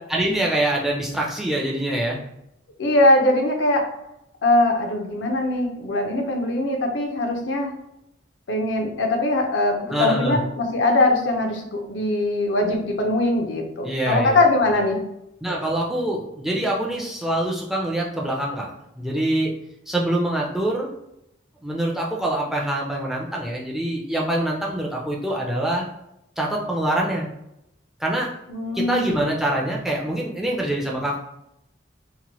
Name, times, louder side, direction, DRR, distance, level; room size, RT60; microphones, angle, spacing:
voice 1, 0.1-2.2 9.9-10.4 13.8-14.4 15.4-18.7 19.0-19.5 19.9-20.9 21.6-25.9 26.4-27.3 28.0-28.3 28.7-31.2, right 1 dB, ahead, -3 dB, 0.4 m, -24 dB
voice 2, 2.8-3.9 4.4-7.8 8.5-15.0 28.5-29.2, left 2 dB, 70° left, 3 dB, 0.5 m, -21 dB
2.9 x 2.1 x 2.9 m, 0.83 s
head